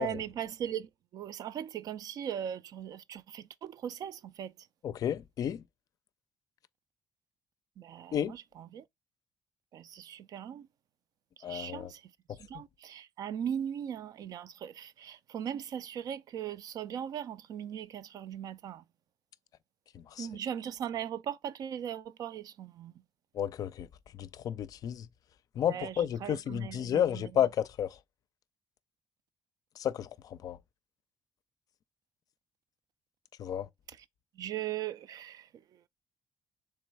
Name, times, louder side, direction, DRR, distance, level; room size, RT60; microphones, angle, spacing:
voice 1, 0.0-4.7 7.8-8.9 9.7-10.7 11.4-18.9 20.2-23.0 25.6-27.5 33.9-34.1 34.3-35.9, right 9 dB, 65° right, 0.4 m, -39 dB
voice 2, 4.8-5.6 8.1-8.3 11.4-11.9 12.3-12.4 19.9-20.3 23.3-23.9 24.1-25.1 25.5-27.9 29.8-30.6 33.4-33.7, left 9 dB, 60° left, 0.4 m, -32 dB
3.5 x 3.0 x 4.5 m
supercardioid pair, 75°, 7 cm